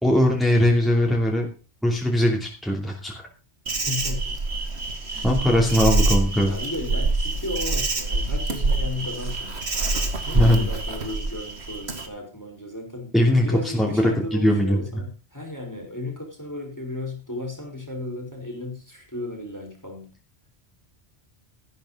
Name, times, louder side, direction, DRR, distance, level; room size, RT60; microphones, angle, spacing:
voice 1, 0.0-1.5 1.8-3.2 5.2-6.5 10.3-10.7 13.1-13.5 13.7-15.0, equal, ahead, -1 dB, 2.8 m, -20 dB
Insect, 3.7-12.1, right 2 dB, 70° right, 2.2 m, -25 dB
voice 2, 3.9-4.4 5.1-5.8 6.4-9.9 10.3-20.1, left 2 dB, 15° left, 1 dB, 4.0 m, -35 dB
13.0 x 12.0 x 3.9 m, 0.35 s
omnidirectional pair, 1.1 m